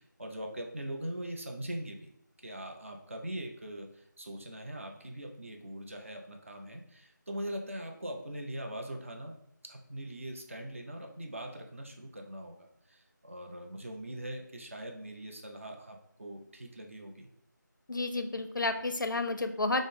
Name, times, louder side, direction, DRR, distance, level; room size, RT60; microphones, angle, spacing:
voice 1, 0.0-2.1 2.4-9.4 9.7-17.3, right 1 dB, 40° right, 3 dB, 0.5 m, -41 dB
voice 2, 17.9-19.8, left 2 dB, 80° left, 8 dB, 0.5 m, -31 dB
5.0 x 2.0 x 3.6 m, 0.72 s
figure-of-eight pair, 170°, 10 cm